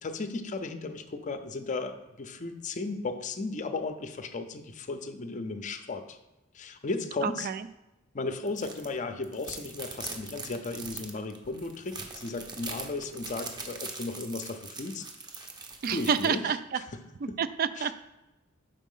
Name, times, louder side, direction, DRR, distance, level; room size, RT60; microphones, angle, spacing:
voice 1, 0.0-6.2 6.5-7.5 8.1-15.1 15.3-15.5 15.9-16.5 17.3-17.4 17.8-17.9, left 3 dB, 35° left, 8 dB, 0.5 m, -35 dB
voice 2, 7.2-7.7 15.8-16.8 17.2-17.9, right 7 dB, 45° right, 12 dB, 0.3 m, -29 dB
sound 1, 8.5-8.9 9.2-16.3, right 3 dB, 20° right, 0.7 m, -42 dB
5.5 x 4.1 x 5.5 m, 0.98 s
head